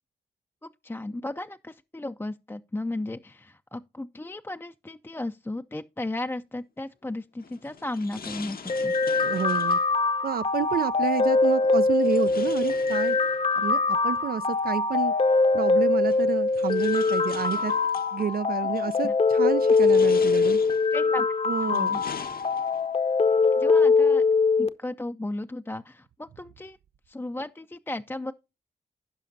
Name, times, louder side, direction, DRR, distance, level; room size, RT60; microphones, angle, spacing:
voice 1, 0.6-8.9 19.0-19.1 20.9-21.3 21.6-22.0 23.6-24.2 24.6-26.8 27.1-28.3, left 2 dB, 15° left, 0.5 m, -35 dB
sound 1, 7.4-9.9 11.9-13.6 14.9-15.0 16.0-18.1 18.7-19.1 19.6-21.0 21.5-23.0, left 6 dB, 60° left, 0.9 m, -43 dB
sound 2, 8.7-24.7, left 4 dB, 35° left, 0.8 m, -23 dB
voice 2, 9.2-9.8 10.2-13.2 13.6-15.1 15.5-17.7 18.1-20.6 21.5-22.0, right 8 dB, 60° right, 0.4 m, -30 dB
16.0 x 5.6 x 2.6 m
cardioid pair, 55°, 17 cm